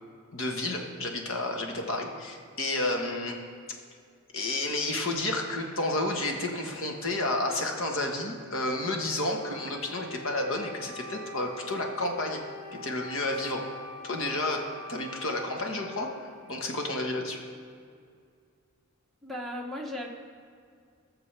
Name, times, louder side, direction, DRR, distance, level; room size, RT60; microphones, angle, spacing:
voice 1, 0.3-3.3 4.3-12.4 12.7-13.6 14.0-16.1 16.5-17.4, left 2 dB, 60° left, 2 dB, 1.4 m, -31 dB
Wind instrument woodwind instrument, 9.3-17.1, left 1 dB, 35° left, 2.7 m, -45 dB
voice 2, 19.2-20.1, left 1 dB, ahead, -1 dB, 1.0 m, -36 dB
19.5 x 6.6 x 3.4 m, 2.2 s
head